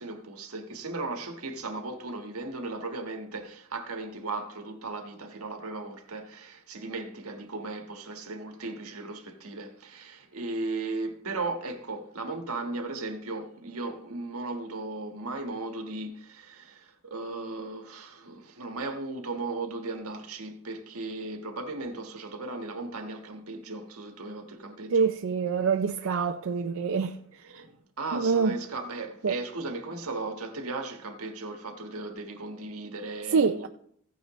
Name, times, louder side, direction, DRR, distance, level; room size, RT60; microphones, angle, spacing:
voice 1, 0.0-25.1 25.6-25.9 26.5-33.7, right 3 dB, 90° right, 1.4 m, -37 dB
voice 2, 24.9-27.1 28.1-28.6 29.2-29.3 33.3-33.7, right 5 dB, 65° right, 0.5 m, -25 dB
15.5 x 9.3 x 3.1 m
head